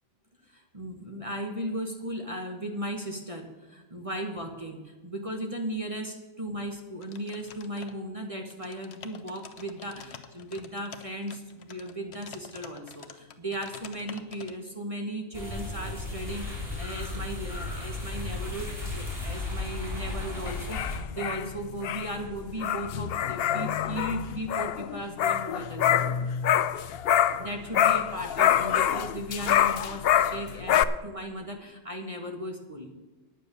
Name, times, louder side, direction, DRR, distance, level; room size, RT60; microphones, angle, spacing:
voice 1, 0.4-26.1 27.4-32.9, right 1 dB, 25° right, 2 dB, 1.3 m, -36 dB
sound 1, 7.0-8.2 8.5-14.5, left 7 dB, 50° left, 1.0 m, -47 dB
sound 2, 15.3-21.0, left 2 dB, ahead, 4.7 m, -34 dB
sound 3, 20.5-27.5 27.7-30.8, left 10 dB, 85° left, 0.5 m, -26 dB
9.6 x 9.2 x 6.7 m, 1.2 s
omnidirectional pair, 1.6 m